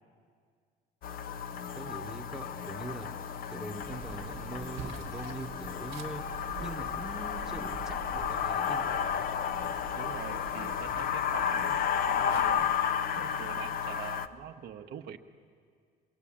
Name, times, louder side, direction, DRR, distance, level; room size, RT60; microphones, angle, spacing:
sound 1, 1.0-14.3, left 8 dB, 60° left, 0.8 m, -32 dB
voice 1, 1.7-3.1 3.5-6.3 6.6-9.3, right 2 dB, 5° right, 2 dB, 1.1 m, -42 dB
sound 2, 3.8-12.8, right 8 dB, 85° right, 1.3 m, -46 dB
voice 2, 9.9-11.8 12.1-12.7 13.1-15.2, right 9 dB, 65° right, 5 dB, 1.1 m, -43 dB
23.0 x 16.0 x 8.7 m, 2.1 s
cardioid pair, 110°, 17 cm